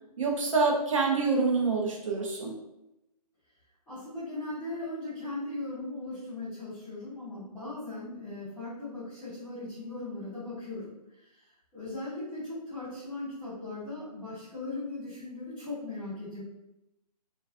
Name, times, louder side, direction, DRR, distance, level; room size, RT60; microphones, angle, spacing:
voice 1, 0.2-2.5, right 4 dB, 50° right, 0 dB, 0.5 m, -26 dB
voice 2, 3.9-11.4 11.7-16.4, left 2 dB, 5° left, -14 dB, 0.4 m, -38 dB
2.3 x 2.3 x 2.3 m, 0.90 s
figure-of-eight pair, 150°, 21 cm